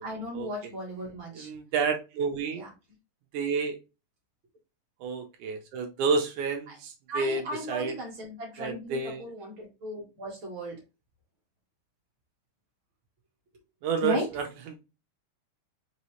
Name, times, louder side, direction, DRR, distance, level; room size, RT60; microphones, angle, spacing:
voice 1, 0.0-1.5 2.5-2.7 6.7-6.8 7.1-10.7 14.0-14.3, equal, 55° right, 1.4 m, -36 dB
voice 2, 1.4-2.6 3.3-3.8 5.0-7.9 8.6-9.3 13.8-14.8, right 5 dB, 75° right, 1.9 m, -30 dB
5.5 x 2.8 x 3.0 m
omnidirectional pair, 4.0 m